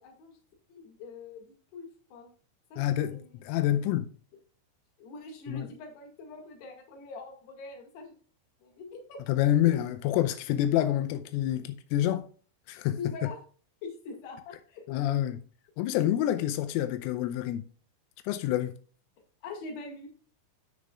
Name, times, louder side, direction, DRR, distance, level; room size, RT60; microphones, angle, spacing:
voice 1, 0.0-0.3 0.7-2.3 2.7-3.3 5.0-8.2 8.6-9.2 9.7-9.8 13.0-13.4 13.8-14.9 19.4-20.3, left 3 dB, 60° left, 3.8 m, -43 dB
voice 2, 2.8-4.1 5.5-5.7 9.3-12.3 12.7-13.3 14.9-15.4 15.8-17.7 18.2-18.8, left 12 dB, 90° left, 3.2 m, -27 dB
9.7 x 9.0 x 2.4 m
omnidirectional pair, 5.7 m